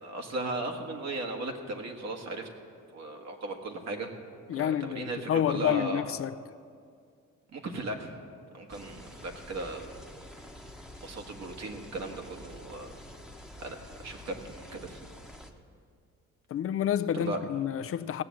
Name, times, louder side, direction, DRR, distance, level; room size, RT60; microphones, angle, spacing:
voice 1, 0.0-2.5 2.9-4.1 4.5-6.1 7.5-8.1 8.5-10.0 11.0-12.9 13.6-15.0 17.1-17.4, right 2 dB, 60° right, 1.7 m, -37 dB
voice 2, 4.5-6.4 16.5-18.2, left 10 dB, 50° left, 0.4 m, -29 dB
sound 1, 8.7-15.5, left 1 dB, ahead, 1.0 m, -48 dB
16.5 x 7.1 x 7.6 m
cardioid pair, 90°, 30 cm